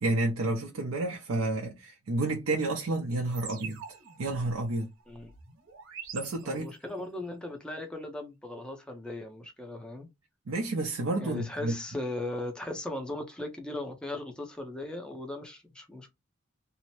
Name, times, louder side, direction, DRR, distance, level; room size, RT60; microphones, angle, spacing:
voice 1, 0.0-3.8 4.2-4.9 6.1-6.7 10.5-11.7, right 2 dB, 85° right, 0.5 m, -30 dB
sound 1, 3.3-7.0, right 6 dB, 70° right, 1.1 m, -46 dB
voice 2, 6.4-10.1 11.2-16.1, left 2 dB, 5° left, 0.5 m, -38 dB
2.7 x 2.0 x 3.0 m
head